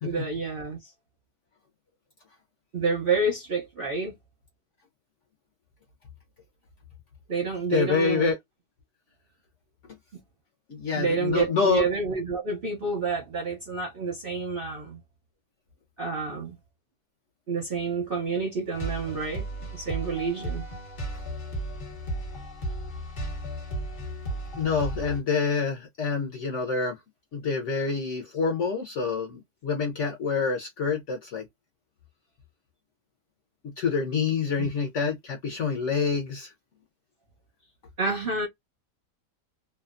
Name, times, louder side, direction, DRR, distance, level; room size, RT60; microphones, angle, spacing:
voice 1, 0.0-0.8 2.7-4.1 7.3-8.3 10.9-15.0 16.0-16.5 17.5-19.4 19.7-20.6 34.6-34.7 38.0-38.5, right 4 dB, 50° right, 0.7 m, -29 dB
voice 2, 7.7-8.4 10.7-11.9 24.6-26.9 27.3-31.4 33.8-36.5, left 5 dB, 65° left, 0.7 m, -27 dB
sound 1, 18.7-25.2, right 1 dB, 35° left, 1.1 m, -34 dB
2.8 x 2.2 x 2.4 m
omnidirectional pair, 1.8 m